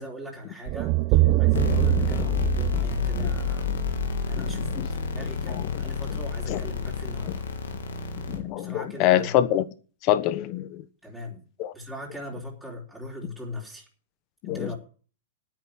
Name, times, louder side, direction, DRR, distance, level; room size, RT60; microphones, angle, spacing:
voice 1, 0.0-3.7 4.2-7.5 8.5-9.6 11.0-11.4 11.7-13.9 14.4-14.8, left 2 dB, ahead, 3.9 m, -39 dB
sound 1, 0.7-4.8, right 18 dB, 40° right, 0.5 m, -24 dB
sound 2, 1.5-8.4, left 7 dB, 80° left, 3.1 m, -29 dB
voice 2, 1.7-2.1 3.2-3.3 4.3-4.9 5.5-5.8 6.1-6.2 6.5-6.6 8.3-9.7 10.0-10.8 11.6-11.7 14.4-14.7, left 13 dB, 40° left, 1.2 m, -26 dB
9.2 x 8.7 x 9.1 m
hypercardioid pair, 125°, 0 cm